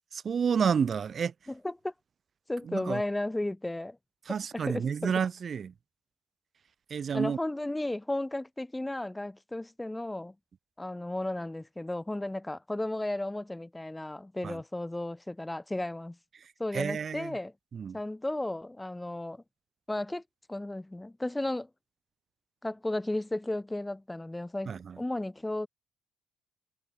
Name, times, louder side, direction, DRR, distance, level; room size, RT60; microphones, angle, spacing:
voice 1, 0.1-1.3 2.7-3.0 4.3-5.7 6.9-7.4 14.4-14.6 16.7-17.3 17.7-18.0 24.7-25.0, right 7 dB, 45° right, 1.5 m, -30 dB
voice 2, 1.5-1.9 2.5-4.0 4.5-5.1 7.1-10.3 10.8-16.2 16.6-17.5 17.9-19.4 19.9-20.2 20.5-21.7 22.6-25.7, left 1 dB, 10° left, 1.3 m, -34 dB
hypercardioid pair, 55°, 0 cm